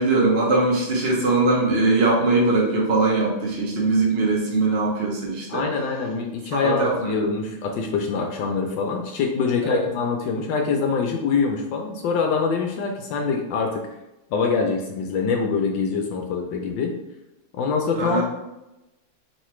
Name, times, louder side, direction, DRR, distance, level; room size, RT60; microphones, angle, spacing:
voice 1, 0.0-5.7 6.5-7.3 9.6-9.8 18.0-18.2, right 3 dB, 40° right, -3 dB, 0.9 m, -21 dB
voice 2, 5.5-13.8 14.3-16.9 17.5-18.2, left 5 dB, 75° left, 2 dB, 1.2 m, -24 dB
4.7 x 3.2 x 3.1 m, 0.94 s
omnidirectional pair, 2.3 m